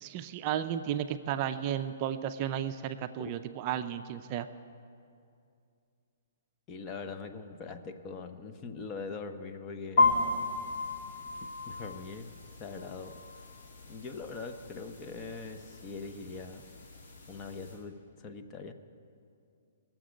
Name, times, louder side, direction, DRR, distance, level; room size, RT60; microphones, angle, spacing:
voice 1, 0.0-4.5, right 10 dB, 35° right, 9 dB, 0.4 m, -33 dB
voice 2, 6.7-10.1 11.4-12.3 12.6-13.2 13.9-16.6 17.3-18.7, left 4 dB, 25° left, 7 dB, 0.7 m, -42 dB
sound 1, 10.0-17.8, left 3 dB, 50° left, 2.6 m, -34 dB
20.5 x 7.3 x 5.1 m, 2.5 s
hypercardioid pair, 140°, 0 cm